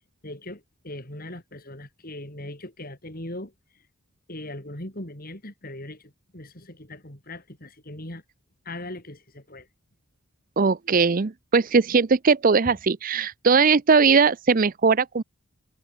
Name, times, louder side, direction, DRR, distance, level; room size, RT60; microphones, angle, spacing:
voice 1, 0.2-3.8 4.3-8.2 8.7-9.7 12.6-12.7, left 1 dB, 40° left, 5.4 m, -39 dB
voice 2, 10.6-15.2, right 5 dB, 40° right, 0.5 m, -20 dB
head